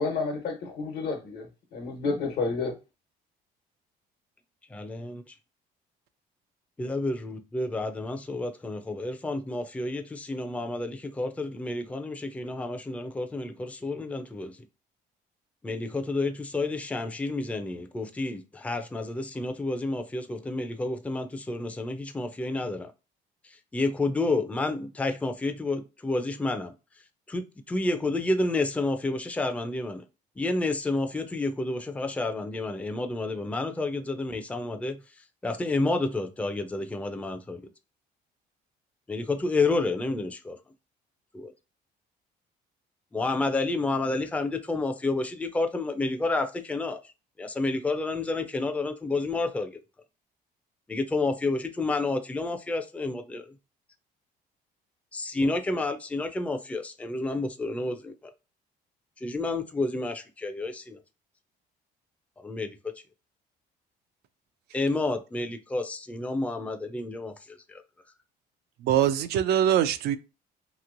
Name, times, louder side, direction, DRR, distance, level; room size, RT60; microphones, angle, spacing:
voice 1, 0.0-1.4 1.7-2.7, left 4 dB, 70° left, 1.1 m, -30 dB
voice 2, 4.7-5.3 6.8-14.6 15.6-22.9 23.4-26.7 27.3-30.0 30.4-35.0 35.4-37.6 39.1-40.6 41.3-41.5 43.1-47.1 47.4-49.8 50.9-53.5 55.1-58.1 59.2-61.0 62.4-62.8 64.7-67.8, left 2 dB, 10° left, 0.4 m, -30 dB
voice 3, 68.8-70.2, right 10 dB, 75° right, 0.4 m, -23 dB
3.0 x 2.9 x 2.5 m
cardioid pair, 110°, 17 cm